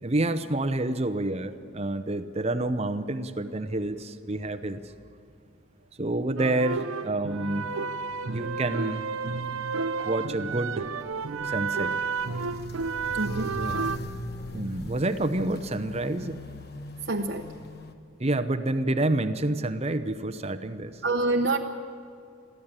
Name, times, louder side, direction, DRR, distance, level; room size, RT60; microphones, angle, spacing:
voice 1, 0.0-4.8 6.0-7.7 8.3-9.1 10.0-10.9 11.4-11.9 13.5-13.9 14.5-16.4 18.2-21.0, right 2 dB, 30° right, 10 dB, 0.8 m, -28 dB
sound 1, 6.4-14.0, right 4 dB, 85° right, 0.7 m, -31 dB
Walk footsteps, 10.3-17.9, left 1 dB, 50° left, 1.2 m, -41 dB
voice 2, 13.1-13.5 17.1-17.5 21.0-21.6, right 2 dB, 55° right, 1 dB, 0.9 m, -26 dB
22.5 x 15.0 x 9.0 m, 2.4 s
head